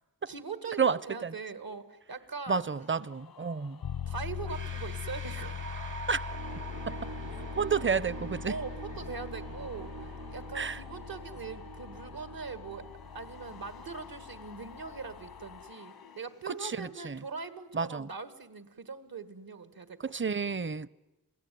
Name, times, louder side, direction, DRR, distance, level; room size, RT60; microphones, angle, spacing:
voice 1, 0.3-2.9 4.1-5.7 8.5-12.9 13.1-20.0, right 5 dB, 75° right, 2.1 m, -41 dB
voice 2, 0.8-1.3 2.5-3.8 6.1-6.2 7.6-8.5 10.5-10.8 16.5-17.2 17.7-18.1 20.0-20.9, right 5 dB, 35° right, 0.8 m, -30 dB
sound 1, 2.8-16.9, left 7 dB, 90° left, 1.4 m, -52 dB
sound 2, 3.8-15.7, left 8 dB, 70° left, 0.8 m, -42 dB
sound 3, 4.4-15.3, right 4 dB, 60° right, 1.6 m, -45 dB
27.5 x 17.5 x 9.5 m
cardioid pair, 40°, 36 cm